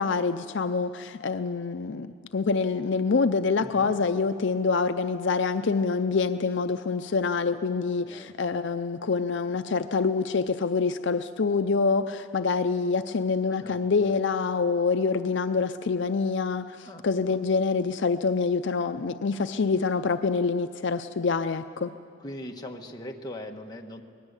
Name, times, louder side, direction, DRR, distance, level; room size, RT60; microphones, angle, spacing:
voice 1, 0.0-21.9, left 4 dB, 65° left, 9 dB, 0.5 m, -26 dB
voice 2, 3.6-3.9 7.9-8.3 13.6-13.8 16.8-17.1 22.2-24.0, left 1 dB, 20° left, 2 dB, 1.4 m, -40 dB
24.5 x 19.5 x 8.2 m, 2.4 s
head